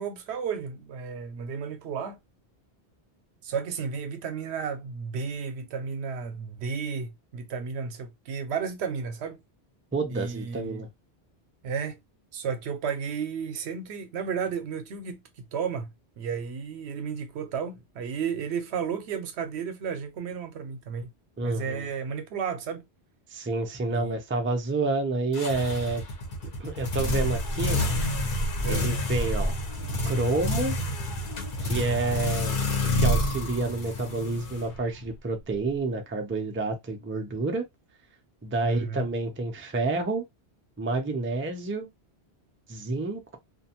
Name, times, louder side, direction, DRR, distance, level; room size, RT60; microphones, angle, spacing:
voice 1, 0.0-2.2 3.4-9.4 10.1-10.9 11.6-12.0 12.3-15.2 15.5-21.1 21.4-22.8 23.9-24.2 28.6-28.9 38.6-39.1, right 6 dB, 85° right, 0.9 m, -33 dB
voice 2, 9.9-10.9 21.4-21.9 23.3-26.0 26.6-27.8 28.7-29.5 30.0-30.8 31.6-32.6 33.0-37.7 38.4-40.2 40.8-41.9 42.7-43.4, right 3 dB, 20° right, 0.3 m, -29 dB
sound 1, 25.3-35.1, left 1 dB, 55° left, 0.8 m, -28 dB
2.5 x 2.2 x 2.8 m
omnidirectional pair, 1.1 m